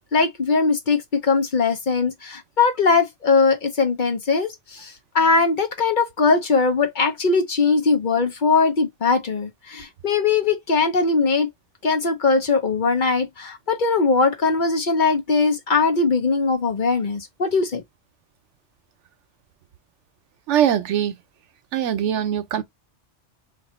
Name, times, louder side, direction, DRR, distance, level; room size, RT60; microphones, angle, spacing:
voice 1, 0.0-11.5 11.8-17.8, left 4 dB, 50° left, 0.8 m, -20 dB
voice 2, 20.5-21.1 21.7-22.6, right 10 dB, 85° right, 1.0 m, -21 dB
2.9 x 2.5 x 4.1 m
omnidirectional pair, 1.2 m